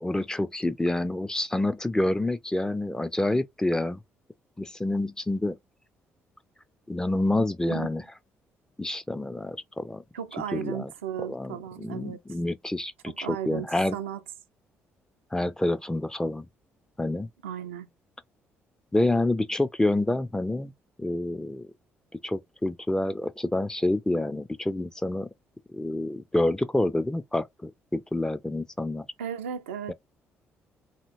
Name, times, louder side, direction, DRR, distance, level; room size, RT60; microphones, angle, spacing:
voice 1, 0.0-4.0 4.6-5.6 6.9-8.0 8.8-10.0 10.5-10.9 11.2-14.0 15.3-16.5 17.0-17.3 18.9-20.7 21.0-21.7 22.2-25.3 25.7-29.1 29.9-30.0, left 1 dB, 10° left, 0.4 m, -28 dB
voice 2, 10.1-12.2 13.1-14.2 17.4-17.9 29.2-29.9, right 9 dB, 85° right, 0.3 m, -35 dB
2.8 x 2.7 x 2.6 m
hypercardioid pair, 45°, 6 cm